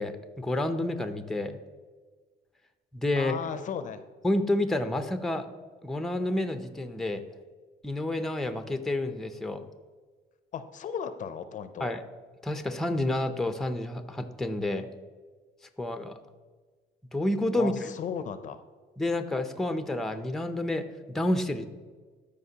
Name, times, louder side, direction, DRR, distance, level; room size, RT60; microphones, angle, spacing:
voice 1, 0.0-1.6 2.9-3.4 4.2-5.5 5.8-7.2 7.8-9.6 11.8-12.0 12.4-14.9 15.8-16.2 17.1-17.9 19.0-21.6, left 1 dB, ahead, 8 dB, 0.5 m, -29 dB
voice 2, 3.2-4.0 10.5-11.9 17.6-18.6, left 7 dB, 50° left, 11 dB, 0.5 m, -36 dB
13.0 x 5.1 x 2.8 m, 1.4 s
cardioid pair, 110°, 17 cm